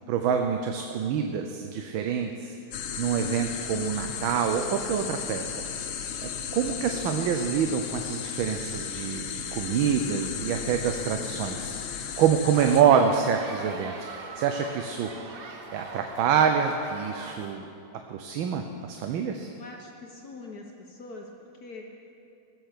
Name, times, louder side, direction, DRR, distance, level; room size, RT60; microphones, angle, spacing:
voice 1, 0.1-2.5 3.0-5.5 5.8-11.8 12.2-15.4 15.7-17.7 18.1-19.5, right 7 dB, 75° right, 5 dB, 1.5 m, -26 dB
sound 1, 2.7-12.8, left 7 dB, 75° left, 1.6 m, -35 dB
sound 2, 12.5-17.6, right 3 dB, 55° right, 0.6 m, -41 dB
voice 2, 19.6-21.3 21.6-22.1, left 3 dB, 50° left, 1 dB, 1.4 m, -43 dB
19.0 x 8.1 x 6.6 m, 2.6 s
omnidirectional pair, 2.3 m